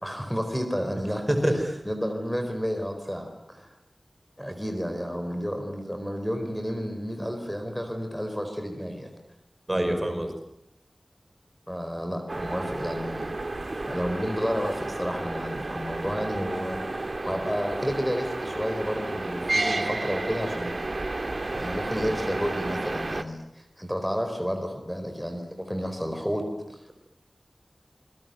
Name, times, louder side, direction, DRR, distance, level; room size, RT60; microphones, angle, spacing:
voice 1, 0.0-3.7 4.4-9.1 11.7-13.3 13.8-20.8 21.6-26.8, equal, 5° left, 6 dB, 4.4 m, -31 dB
voice 2, 9.7-10.3, right 1 dB, 25° right, 5 dB, 5.3 m, -24 dB
sound 1, 12.3-23.2, right 2 dB, 55° right, 2.0 m, -31 dB
27.5 x 22.0 x 9.4 m, 0.80 s
wide cardioid pair, 70°, 0 cm